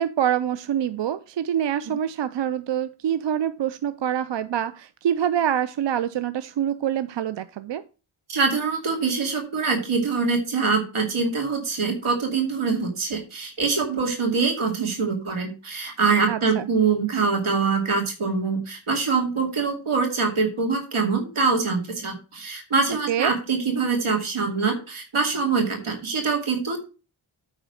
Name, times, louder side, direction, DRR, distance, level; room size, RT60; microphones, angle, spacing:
voice 1, 0.0-7.8 16.2-16.7 23.1-23.3, right 10 dB, 60° right, 13 dB, 0.5 m, -25 dB
voice 2, 8.3-26.9, right 4 dB, 85° right, 2 dB, 2.6 m, -24 dB
9.2 x 3.9 x 6.2 m, 0.34 s
cardioid pair, 55°, 48 cm